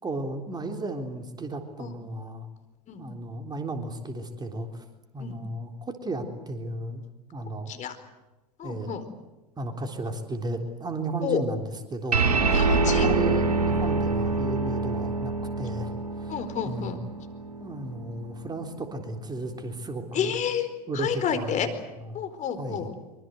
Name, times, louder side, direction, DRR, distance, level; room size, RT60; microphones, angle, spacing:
voice 1, 0.0-2.5 3.0-4.8 5.1-7.0 7.3-7.7 8.6-8.9 9.6-11.6 11.9-12.3 12.8-15.9 16.2-16.3 16.6-17.0 17.6-20.3 20.9-21.6 22.0-22.1 22.6-22.9, right 2 dB, 20° right, 5 dB, 3.7 m, -34 dB
voice 2, 8.6-9.0 11.2-11.4 12.5-13.1 16.3-17.0 20.1-20.7 20.9-21.7 22.1-22.9, left 8 dB, 35° left, 9 dB, 4.4 m, -30 dB
sound 1, 12.1-18.9, right 3 dB, 85° right, 4.4 m, -26 dB
25.0 x 24.5 x 8.0 m, 1.1 s
hypercardioid pair, 85°, 20 cm